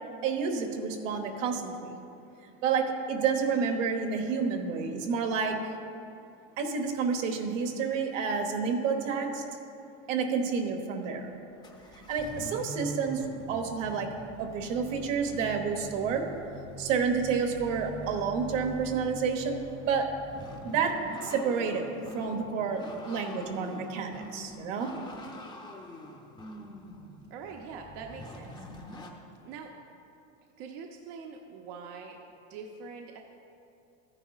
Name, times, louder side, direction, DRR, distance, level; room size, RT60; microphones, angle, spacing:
voice 1, 0.2-2.0 2.6-5.8 6.6-9.4 10.1-11.3 12.1-13.2 13.5-14.1 14.4-16.2 16.8-20.1 20.6-21.9 22.1-24.9, right 5 dB, 80° right, 4 dB, 1.2 m, -29 dB
sound 1, 11.2-11.3 11.6-29.1, left 1 dB, 10° left, 0.6 m, -44 dB
voice 2, 27.3-28.7 29.4-29.7 30.6-33.2, right 5 dB, 60° right, 2 dB, 0.7 m, -44 dB
13.5 x 9.6 x 2.4 m, 2.7 s
supercardioid pair, 150°, 37 cm